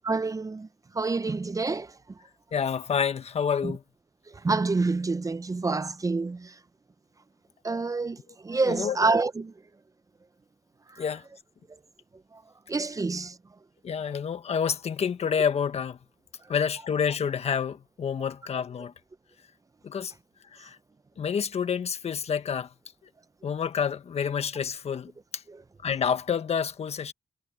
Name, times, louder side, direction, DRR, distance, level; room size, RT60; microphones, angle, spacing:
voice 1, 0.0-0.7 0.9-1.9 3.6-3.7 4.4-6.5 7.6-8.2 8.4-9.5 12.7-13.3, right 3 dB, 30° right, 0.7 m, -27 dB
voice 2, 2.5-3.8 8.6-9.0 11.0-11.2 13.8-16.0 16.5-18.9 19.8-20.1 20.5-20.8 21.2-22.7 23.4-25.4 25.8-27.1, left 7 dB, 65° left, 1.4 m, -28 dB
cardioid pair, 65°, 12 cm